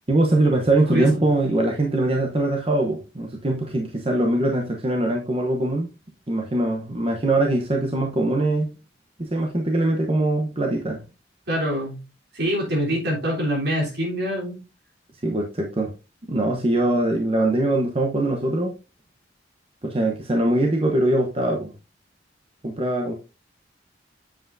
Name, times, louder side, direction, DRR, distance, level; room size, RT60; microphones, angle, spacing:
voice 1, 0.1-5.9 6.3-8.7 9.2-11.0 15.2-15.9 16.3-18.7 19.8-21.7 22.6-23.1, right 1 dB, 30° right, 1 dB, 0.9 m, -22 dB
voice 2, 0.9-1.2 11.5-12.0 12.3-14.6, equal, 60° right, -2 dB, 3.4 m, -25 dB
7.7 x 7.5 x 2.6 m, 0.29 s
head